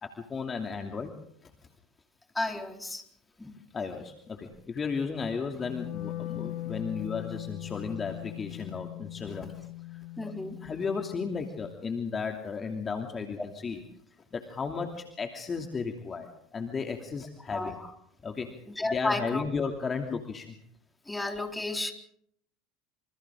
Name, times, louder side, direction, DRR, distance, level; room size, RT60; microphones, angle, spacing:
voice 1, 0.0-1.1 1.4-1.5 3.7-10.3 10.6-13.8 14.3-17.8 18.2-18.6 18.8-20.5, left 5 dB, 30° left, 4 dB, 2.8 m, -34 dB
voice 2, 2.3-3.0 3.4-3.5 10.2-10.6 17.5-17.9 18.8-19.4 21.1-21.9, left 2 dB, 10° left, 3 dB, 4.2 m, -32 dB
Wind instrument woodwind instrument, 5.6-11.8, left 16 dB, 60° left, 5.0 m, -40 dB
28.0 x 27.0 x 3.8 m, 0.67 s
hypercardioid pair, 80°, 0 cm